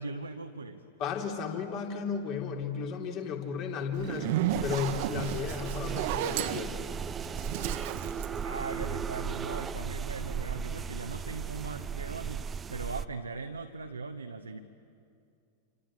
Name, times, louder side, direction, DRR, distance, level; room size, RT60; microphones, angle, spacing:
voice 1, 0.0-0.8 8.4-14.6, right 4 dB, 75° right, 5 dB, 1.1 m, -39 dB
voice 2, 1.0-4.3 4.6-6.9, left 6 dB, 40° left, 3 dB, 3.5 m, -34 dB
Zipper (clothing), 3.9-9.2, right 11 dB, 50° right, 1.1 m, -33 dB
sound 1, 4.5-13.0, right 6 dB, 20° right, 0.7 m, -36 dB
28.0 x 27.5 x 7.7 m, 2.5 s
figure-of-eight pair, 90°, 0 cm